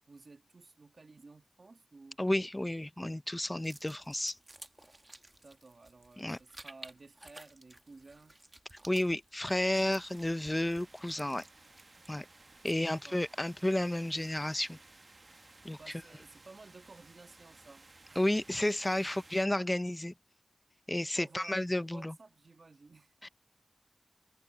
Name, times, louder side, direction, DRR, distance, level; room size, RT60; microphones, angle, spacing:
voice 1, 0.1-2.2 5.4-8.4 12.8-13.2 15.8-18.2 19.0-19.1 21.1-23.3, right 3 dB, 75° right, 1.6 m, -55 dB
voice 2, 2.2-4.4 6.2-6.4 8.9-11.4 12.1-12.3 12.6-14.8 15.6-15.8 18.2-20.1 20.9-22.1 23.2-23.3, left 1 dB, 25° left, 0.5 m, -32 dB
sound 1, 3.6-13.0, right 1 dB, 35° right, 1.3 m, -55 dB
sound 2, 9.5-19.5, right 2 dB, 55° right, 0.9 m, -58 dB
wide cardioid pair, 45°, 0 cm